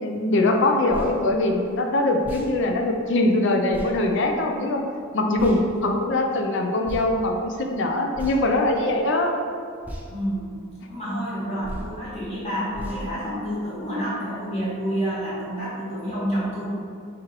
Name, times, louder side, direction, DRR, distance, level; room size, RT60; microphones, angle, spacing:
voice 1, 0.0-4.8 5.1-9.3, left 2 dB, 55° left, 3 dB, 0.4 m, -22 dB
sound 1, 0.9-1.1 2.2-2.5 3.7-3.9 5.4-5.6 6.8-7.1 8.1-8.6 9.8-10.1 11.6-11.9 12.7-13.0, equal, 5° right, 0.5 m, -35 dB
voice 2, 5.3-6.1 10.1-10.5 10.9-16.6, equal, 30° left, -9 dB, 1.2 m, -29 dB
3.7 x 3.0 x 4.6 m, 2.3 s
head